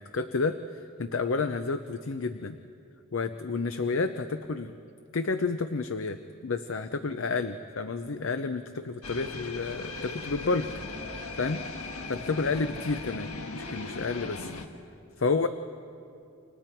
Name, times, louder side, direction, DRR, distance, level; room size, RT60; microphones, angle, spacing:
voice 1, 0.0-2.6 3.1-4.8 5.1-10.7 11.4-11.6 12.1-14.5 15.2-15.5, left 4 dB, 65° left, 9 dB, 0.6 m, -30 dB
sound 1, 9.0-14.7, left 3 dB, 85° left, 1.6 m, -38 dB
29.5 x 25.0 x 4.5 m, 2.6 s
head